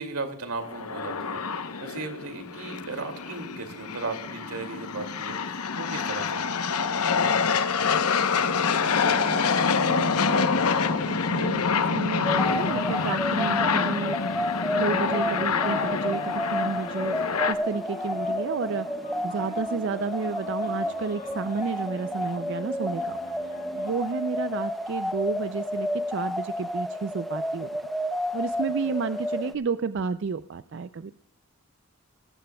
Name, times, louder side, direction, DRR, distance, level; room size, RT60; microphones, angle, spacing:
voice 1, 0.0-6.5, right 3 dB, 80° right, 6 dB, 2.4 m, -36 dB
sound 1, 0.6-17.5, left 5 dB, 90° left, 0.9 m, -26 dB
voice 2, 8.4-10.6 10.9-14.2 14.7-17.2 17.5-19.0 19.2-23.2 23.4-27.8 28.3-31.1, right 5 dB, 55° right, 12 dB, 0.4 m, -32 dB
sound 2, 9.0-23.9, left 2 dB, 35° left, 1.6 m, -42 dB
sound 3, 12.2-29.5, left 1 dB, ahead, 0.5 m, -31 dB
20.5 x 14.5 x 2.3 m, 0.68 s
head